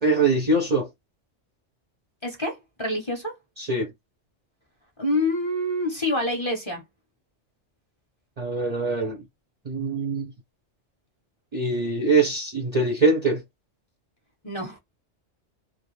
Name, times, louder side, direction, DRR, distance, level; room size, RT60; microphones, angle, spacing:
voice 1, 0.0-0.9 3.6-3.9 8.4-9.2 9.7-10.3 11.5-13.4, right 3 dB, 45° right, 0.6 m, -23 dB
voice 2, 2.2-3.4 5.0-6.8 14.4-14.8, left 1 dB, 30° left, 0.7 m, -27 dB
2.4 x 2.4 x 3.0 m
omnidirectional pair, 1.2 m